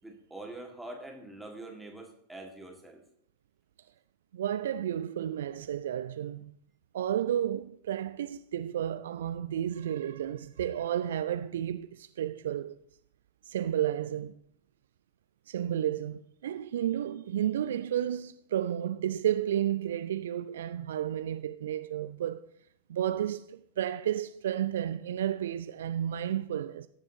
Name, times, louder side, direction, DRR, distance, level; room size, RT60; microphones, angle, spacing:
voice 1, 0.0-3.0, right 2 dB, 5° right, 2.0 m, -44 dB
voice 2, 4.3-6.5 6.9-12.8 13.4-14.3 15.5-22.4 22.9-26.9, right 10 dB, 60° right, 0.3 m, -32 dB
18.0 x 7.4 x 2.9 m
figure-of-eight pair, 90°, 0 cm